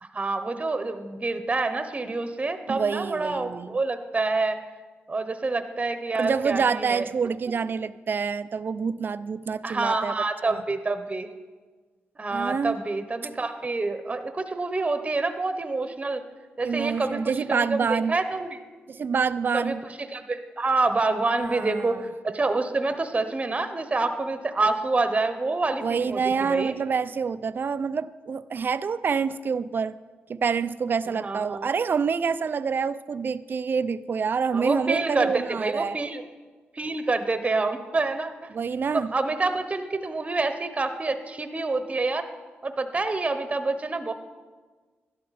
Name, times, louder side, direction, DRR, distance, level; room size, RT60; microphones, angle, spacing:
voice 1, 0.0-4.6 5.1-7.1 9.6-11.3 12.2-16.2 16.6-18.6 19.5-26.7 31.2-31.7 34.5-36.2 36.7-38.5 38.9-42.3 42.6-44.1, right 3 dB, 30° right, 9 dB, 0.9 m, -27 dB
voice 2, 2.7-3.8 6.2-10.1 10.4-10.6 12.3-12.8 16.6-18.2 18.9-19.8 21.4-22.0 25.8-30.0 30.3-36.0 38.5-39.1, right 6 dB, 50° right, 15 dB, 0.4 m, -27 dB
12.0 x 11.5 x 4.1 m, 1.4 s
cardioid pair, 70°, 4 cm